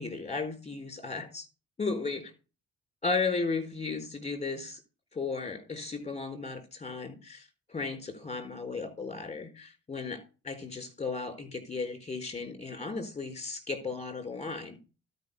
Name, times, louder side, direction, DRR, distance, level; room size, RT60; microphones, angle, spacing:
voice 1, 0.0-1.5 1.8-2.3 3.0-4.8 5.1-14.8, left 4 dB, 20° left, 4.1 m, -35 dB
12.0 x 5.5 x 5.4 m
cardioid pair, 90°, 30 cm